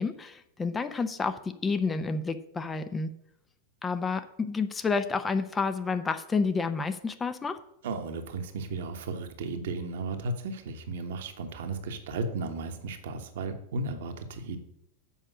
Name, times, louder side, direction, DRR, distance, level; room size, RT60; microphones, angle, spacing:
voice 1, 0.0-3.1 3.8-7.6, left 4 dB, 15° left, 10 dB, 0.6 m, -30 dB
voice 2, 7.8-14.6, right 3 dB, 55° right, 6 dB, 1.1 m, -35 dB
7.3 x 5.4 x 7.2 m, 0.76 s
figure-of-eight pair, 90°, 0 cm